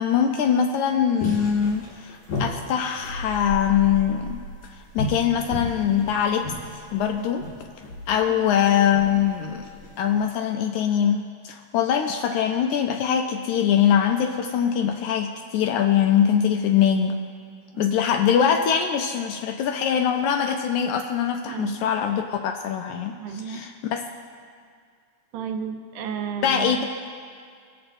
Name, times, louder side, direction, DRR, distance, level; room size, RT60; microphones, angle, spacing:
voice 1, 0.0-4.4 4.7-6.5 6.9-7.4 8.1-9.6 10.0-17.2 17.8-24.0 26.4-26.8, left 8 dB, 80° left, 5 dB, 1.8 m, -22 dB
sound 1, 1.2-10.2, left 1 dB, 60° left, 3.5 m, -34 dB
voice 2, 21.5-21.9 23.2-23.7 25.3-26.8, right 7 dB, 80° right, 6 dB, 2.1 m, -33 dB
22.0 x 8.0 x 2.6 m, 2.1 s
omnidirectional pair, 3.7 m